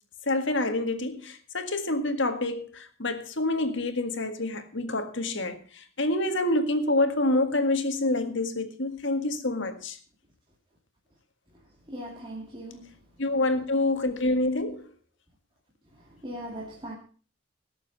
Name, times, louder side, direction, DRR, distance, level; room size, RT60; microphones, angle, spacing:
voice 1, 0.2-10.0 13.2-14.8, left 2 dB, 60° left, 1.9 m, -27 dB
voice 2, 11.9-12.8 16.2-16.9, equal, 25° right, 2.5 m, -38 dB
18.0 x 7.2 x 5.3 m
head